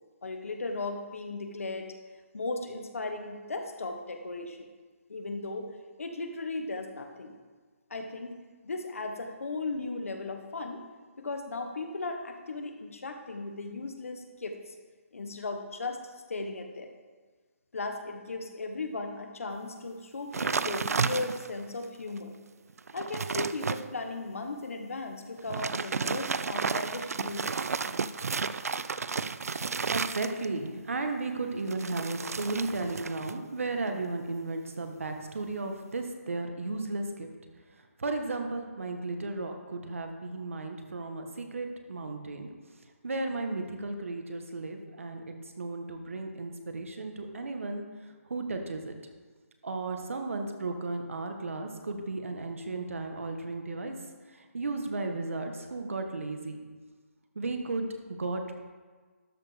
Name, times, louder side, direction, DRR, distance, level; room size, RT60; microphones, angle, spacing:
voice 1, 0.2-1.9 2.3-4.7 5.1-5.7 6.0-7.3 7.9-8.3 8.6-10.8 11.2-14.6 15.1-16.0 16.3-16.9 17.7-22.3 22.9-27.6, left 3 dB, 65° left, 5 dB, 1.2 m, -36 dB
sound 1, 20.3-21.6 22.2-22.3 22.7-23.8 25.4-30.7 31.7-33.4 33.7-34.1, right 5 dB, 85° right, 0.4 m, -32 dB
voice 2, 29.1-29.7 29.9-37.3 37.7-42.5 43.0-48.9 49.6-53.9 54.3-56.6 57.3-58.5, right 3 dB, 60° right, 4 dB, 1.4 m, -35 dB
12.5 x 5.1 x 5.0 m, 1.4 s
hypercardioid pair, 180°, 8 cm